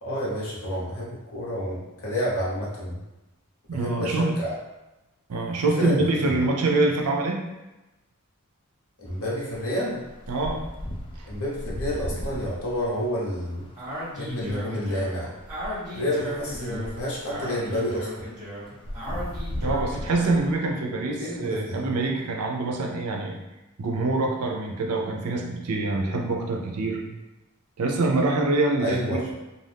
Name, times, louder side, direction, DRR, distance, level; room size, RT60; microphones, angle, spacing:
voice 1, 0.0-3.0 3.7-4.5 5.8-6.0 6.3-6.4 9.0-10.0 11.2-13.7 14.1-15.3 15.9-18.2 21.2-22.0 28.8-29.3, equal, 65° left, -5 dB, 1.0 m, -29 dB
voice 2, 3.7-4.3 5.3-7.4 10.3-10.7 11.2-11.3 19.6-23.3 23.8-27.0 27.8-29.2, right 2 dB, 80° right, 1 dB, 0.5 m, -25 dB
sound 1, 9.1-9.2 9.5-20.5, equal, 25° left, 0.3 m, -37 dB
Speech, 13.8-20.5, equal, 15° right, 1.2 m, -36 dB
2.5 x 2.3 x 3.3 m, 1.0 s
head